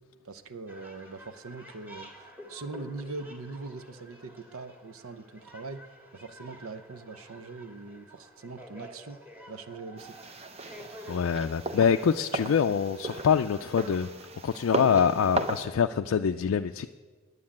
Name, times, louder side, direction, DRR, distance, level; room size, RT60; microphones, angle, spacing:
voice 1, 0.2-2.1 2.5-5.9 6.1-9.2 9.5-10.1, right 3 dB, 85° right, 12 dB, 0.7 m, -41 dB
sound 1, 0.7-14.0, equal, 10° right, 1.9 m, -50 dB
sound 2, 10.0-15.7, right 2 dB, 30° right, 0.7 m, -36 dB
voice 2, 11.1-14.1 14.4-16.9, left 7 dB, 65° left, 7 dB, 0.3 m, -25 dB
9.7 x 9.6 x 8.7 m, 1.4 s
head